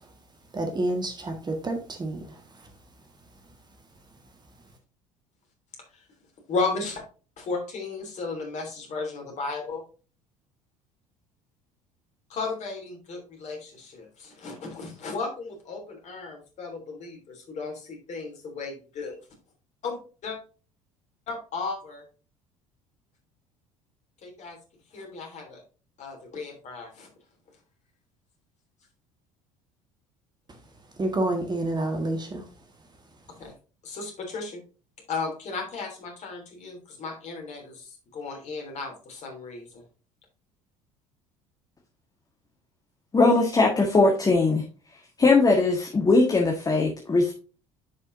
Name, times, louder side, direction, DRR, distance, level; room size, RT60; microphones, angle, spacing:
voice 1, 0.5-2.2 31.0-32.4, right 2 dB, 25° right, 4 dB, 1.7 m, -28 dB
voice 2, 6.5-7.0 7.4-9.8 12.3-19.1 19.8-20.4 21.3-22.0 24.2-24.6 24.9-25.6 26.0-27.1 33.4-33.5 33.8-34.6 35.1-39.8, left 4 dB, 40° left, 1 dB, 3.1 m, -34 dB
voice 3, 43.1-44.6 45.2-47.3, left 3 dB, 20° left, 0 dB, 1.6 m, -20 dB
10.0 x 5.3 x 2.7 m, 0.36 s
figure-of-eight pair, 60°, 18 cm